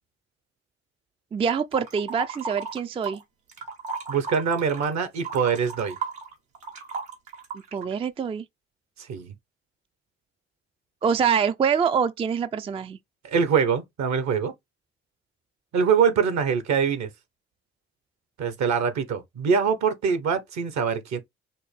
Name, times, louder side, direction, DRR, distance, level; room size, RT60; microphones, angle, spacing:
voice 1, 1.3-3.2 7.7-8.4 11.0-13.0, right 7 dB, 20° right, 0.3 m, -25 dB
sound 1, 1.7-3.2 3.5-7.9, right 5 dB, 85° right, 1.3 m, -35 dB
voice 2, 4.1-6.0 9.1-9.3 13.3-14.5 15.7-17.1 18.4-21.2, right 6 dB, 60° right, 1.0 m, -24 dB
5.2 x 2.1 x 3.2 m
hypercardioid pair, 45°, 32 cm